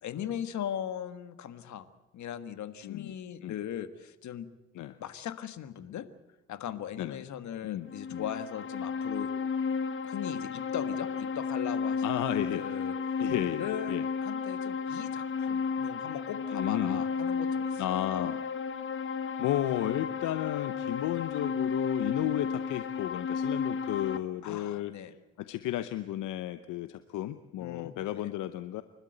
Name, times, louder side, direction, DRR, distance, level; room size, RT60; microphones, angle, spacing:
voice 1, 0.0-1.8 2.1-4.5 5.0-6.1 6.5-9.3 10.0-12.0 12.3-12.9 13.6-17.8 18.1-18.3 24.4-25.1 27.6-28.3, left 10 dB, 70° left, 12 dB, 1.6 m, -39 dB
voice 2, 2.8-3.2 3.4-3.6 4.7-5.0 7.0-7.2 7.6-8.2 12.0-12.7 13.2-14.0 16.5-17.0 17.8-18.4 19.4-24.9 25.4-28.8, left 13 dB, 85° left, 12 dB, 0.9 m, -33 dB
sound 1, 7.9-24.2, left 5 dB, 40° left, 1.3 m, -33 dB
29.5 x 12.5 x 7.9 m, 1.1 s
cardioid pair, 90°, 30 cm